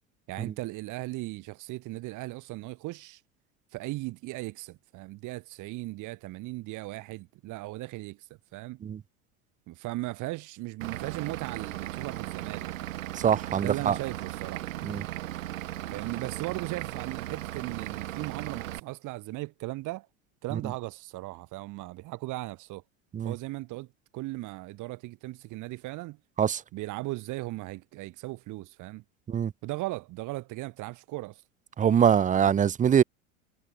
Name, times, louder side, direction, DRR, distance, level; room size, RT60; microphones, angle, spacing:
voice 1, 0.3-3.2 3.7-8.8 9.7-12.7 13.1-13.3 13.6-14.7 15.9-20.1 20.4-22.8 23.2-23.9 24.1-26.2 26.7-29.0 29.6-31.4, right 20 dB, 50° right, 3.5 m, -37 dB
Vehicle / Engine, 10.8-18.8, right 14 dB, 75° right, 0.9 m, -37 dB
voice 2, 13.2-13.9 14.8-15.0 23.1-23.3 26.4-26.6 29.3-29.5 31.8-33.0, right 8 dB, 20° right, 0.7 m, -23 dB
figure-of-eight pair, 80°, 40 cm